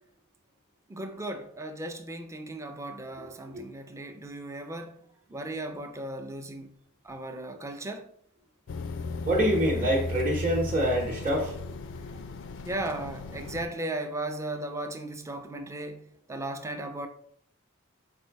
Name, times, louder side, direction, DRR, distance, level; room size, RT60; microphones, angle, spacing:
voice 1, 0.9-5.0 5.3-6.8 7.0-8.1 12.7-16.0 16.3-17.1, right 1 dB, 15° right, 0.4 m, -36 dB
sound 1, 8.7-13.7, left 2 dB, 60° left, 0.4 m, -36 dB
voice 2, 9.2-11.5, equal, 35° right, 0.9 m, -26 dB
4.3 x 2.6 x 4.6 m
head